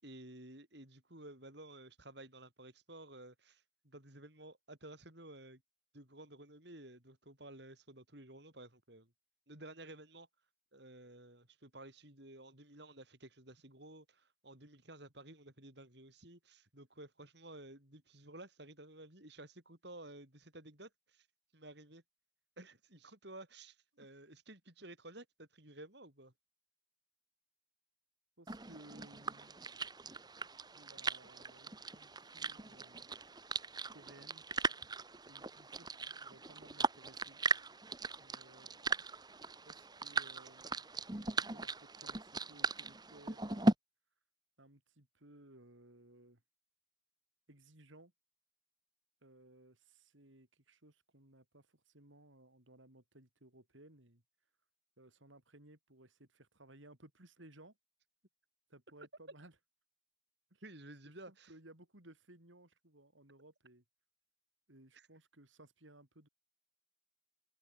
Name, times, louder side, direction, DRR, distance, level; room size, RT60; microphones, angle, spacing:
voice 1, 0.0-5.6 5.9-9.1 9.5-10.3 10.7-21.3 21.5-22.0 22.6-26.3 60.6-61.5 64.9-65.1, right 1 dB, 55° right, 5.2 m, -54 dB
voice 2, 28.4-29.7 30.7-33.1 33.9-34.4 35.3-37.4 38.2-38.9 39.6-40.9 41.5-43.7 44.6-46.4 47.5-48.1 49.2-54.2 55.0-57.8 58.7-59.5 60.5-60.6 61.1-63.8 64.7-66.3, right 1 dB, 75° right, 4.2 m, -60 dB
sound 1, 28.5-43.7, right 3 dB, 20° right, 1.5 m, -38 dB
head